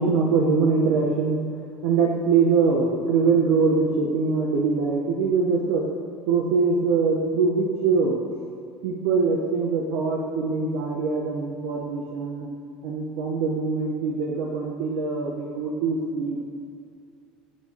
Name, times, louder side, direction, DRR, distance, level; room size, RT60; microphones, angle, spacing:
voice 1, 0.0-1.4 1.8-5.9 6.3-8.2 8.8-12.5 12.8-16.4, right 4 dB, 75° right, -1 dB, 1.6 m, -23 dB
22.5 x 9.3 x 3.7 m, 2.3 s
cardioid pair, 145°, 3 cm